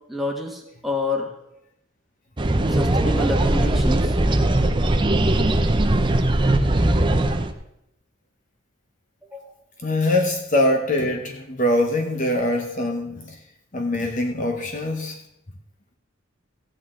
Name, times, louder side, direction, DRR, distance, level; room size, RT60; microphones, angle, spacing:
voice 1, 0.1-1.3 2.7-4.2 9.2-9.4, left 2 dB, ahead, 0 dB, 1.4 m, -28 dB
sound 1, 2.4-7.5, right 1 dB, 20° right, 0.6 m, -20 dB
voice 2, 9.8-13.4 13.7-15.2, left 1 dB, 35° left, 3 dB, 0.9 m, -23 dB
15.5 x 8.6 x 3.7 m, 0.82 s
head